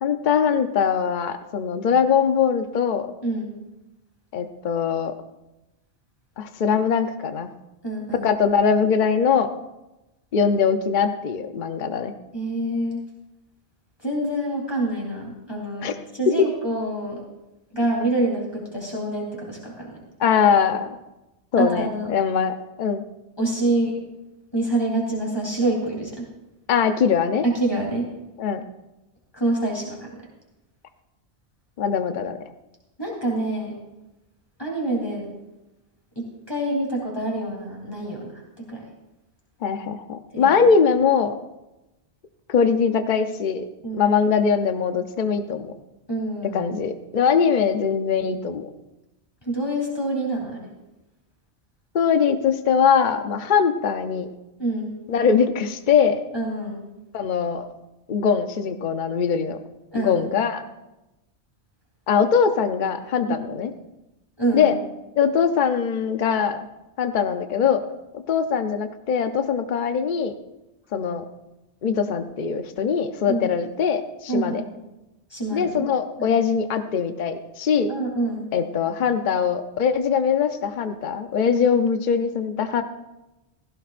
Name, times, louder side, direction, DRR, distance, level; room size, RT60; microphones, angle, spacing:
voice 1, 0.0-3.1 4.3-5.1 6.4-7.5 8.2-9.5 10.3-12.1 15.8-15.9 20.2-20.9 21.5-23.0 26.7-27.4 28.4-28.6 31.8-32.4 39.6-41.3 42.5-43.6 43.9-45.7 46.5-48.7 51.9-54.3 55.1-56.2 57.1-57.7 58.1-59.6 59.9-60.6 62.1-63.7 64.5-64.8 65.2-66.7 67.0-67.8 68.3-70.3 70.9-71.3 71.8-74.6 75.5-77.9 78.5-82.8, left 6 dB, 50° left, 8 dB, 0.8 m, -22 dB
voice 2, 7.8-8.3 12.3-13.0 14.0-17.2 17.7-20.0 21.6-22.1 23.4-24.0 24.5-26.2 27.4-28.1 29.4-30.1 33.0-33.7 34.6-35.3 36.2-38.3 38.7-38.8 40.3-40.6 43.8-44.1 46.1-46.7 49.4-50.7 54.6-54.9 56.3-56.8 59.9-60.5 63.3-63.4 64.4-64.7 73.3-73.4 74.3-74.7 75.3-75.9 76.2-76.4 77.9-78.5, right 2 dB, 20° left, -3 dB, 3.5 m, -26 dB
16.0 x 15.5 x 2.5 m, 0.98 s
omnidirectional pair, 1.1 m